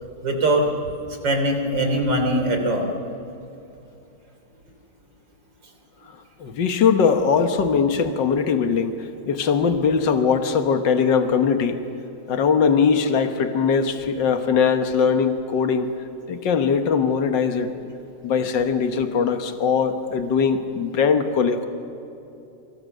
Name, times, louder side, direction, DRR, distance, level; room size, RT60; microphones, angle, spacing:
voice 1, 0.2-0.7 1.2-2.9, right 1 dB, 75° right, 4 dB, 4.1 m, -21 dB
voice 2, 6.4-11.8 12.3-15.9 16.3-17.7 18.2-21.7, left 6 dB, 75° left, 7 dB, 2.0 m, -21 dB
27.5 x 25.0 x 6.7 m, 2.9 s
omnidirectional pair, 2.0 m